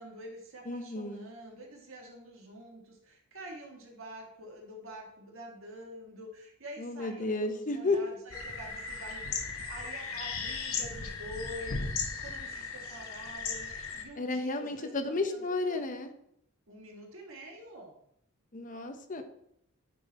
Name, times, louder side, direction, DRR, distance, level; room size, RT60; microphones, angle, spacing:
voice 1, 0.0-11.9 12.2-15.8 16.7-17.9, equal, 70° right, 0 dB, 1.7 m, -47 dB
voice 2, 0.7-1.2 6.8-8.0 14.2-16.1 18.5-19.2, left 2 dB, 40° left, 6 dB, 0.8 m, -32 dB
sound 1, 8.3-14.0, left 5 dB, 80° left, 1.1 m, -37 dB
9.3 x 3.9 x 4.1 m, 0.72 s
head